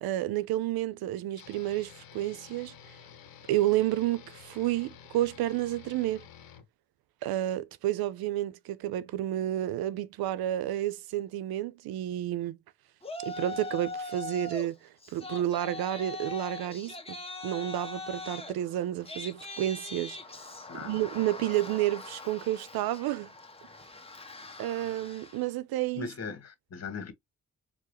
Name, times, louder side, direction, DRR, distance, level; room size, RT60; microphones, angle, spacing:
voice 1, 0.0-2.7 3.5-6.2 7.2-12.6 13.2-14.8 15.1-20.2 20.7-23.3 24.6-26.1, right 13 dB, 70° right, 0.6 m, -30 dB
sound 1, 1.4-6.6, left 8 dB, 65° left, 0.9 m, -51 dB
Yell, 13.0-14.7 15.0-25.5, left 3 dB, 15° left, 1.2 m, -41 dB
voice 2, 20.7-21.0 25.9-27.1, left 5 dB, 40° left, 1.6 m, -39 dB
4.6 x 2.1 x 3.0 m
hypercardioid pair, 45°, 38 cm